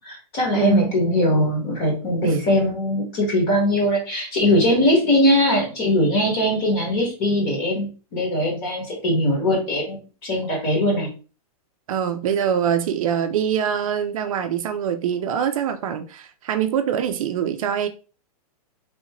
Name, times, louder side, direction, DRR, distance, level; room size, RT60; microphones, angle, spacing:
voice 1, 0.0-11.1, left 1 dB, 30° left, 1.2 m, -21 dB
voice 2, 0.5-0.9 2.2-2.4 11.9-17.9, right 8 dB, 60° right, 0.4 m, -24 dB
3.4 x 2.5 x 2.9 m
supercardioid pair, 165°, 20 cm